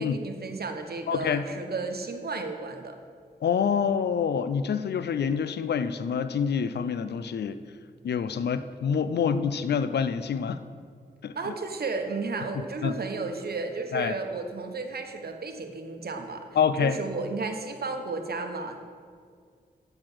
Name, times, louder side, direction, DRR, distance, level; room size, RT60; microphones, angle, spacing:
voice 1, 0.0-3.0 11.3-16.4 16.8-18.8, right 3 dB, 65° right, 5 dB, 1.1 m, -33 dB
voice 2, 1.1-1.4 3.4-7.6 8.0-10.6 11.2-11.5 12.5-12.9 13.9-14.1 16.6-17.0, left 7 dB, 75° left, 13 dB, 0.4 m, -27 dB
7.7 x 6.7 x 6.1 m, 2.1 s
cardioid pair, 40°, 17 cm